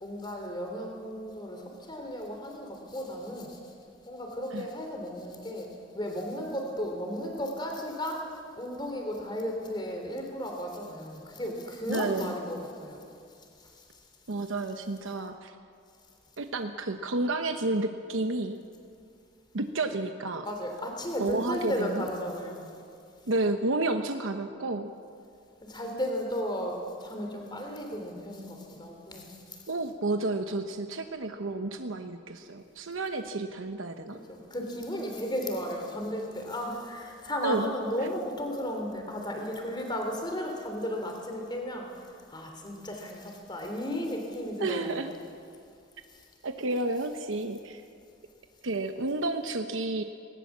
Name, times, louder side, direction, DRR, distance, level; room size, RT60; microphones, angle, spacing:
voice 1, 0.0-3.6 4.1-13.0 20.4-22.6 25.6-29.4 34.3-41.9 42.3-45.0, equal, 25° left, 2 dB, 3.1 m, -34 dB
voice 2, 11.9-12.4 14.3-15.5 16.4-18.6 19.5-20.5 21.2-22.0 23.3-24.9 29.7-34.2 37.4-37.7 38.0-38.1 44.6-45.1 46.4-47.8 48.6-50.0, right 2 dB, 85° right, 6 dB, 1.0 m, -31 dB
19.5 x 19.0 x 7.4 m, 2.4 s
head